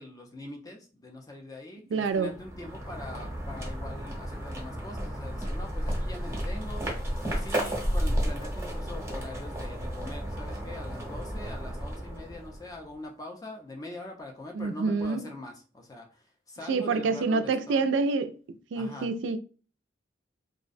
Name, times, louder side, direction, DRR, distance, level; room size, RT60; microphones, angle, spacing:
voice 1, 0.0-17.9 18.7-19.1, left 2 dB, 20° left, 0.4 m, -43 dB
voice 2, 1.9-2.3 14.5-15.3 16.7-18.3 18.7-19.4, right 4 dB, 80° right, 0.3 m, -27 dB
sound 1, 2.1-12.9, equal, 15° right, 0.7 m, -33 dB
2.4 x 2.0 x 2.5 m
head